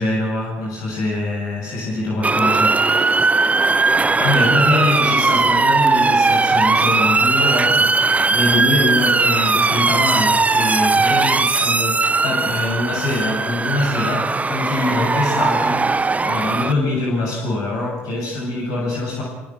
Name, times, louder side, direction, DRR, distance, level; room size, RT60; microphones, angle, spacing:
voice 1, 0.0-3.8 4.2-19.2, left 2 dB, 65° left, -3 dB, 7.9 m, -24 dB
Motor vehicle (road) / Siren, 2.2-16.7, right 3 dB, 20° right, 0.8 m, -18 dB
24.0 x 23.5 x 6.4 m, 0.99 s
hypercardioid pair, 65°, 6 cm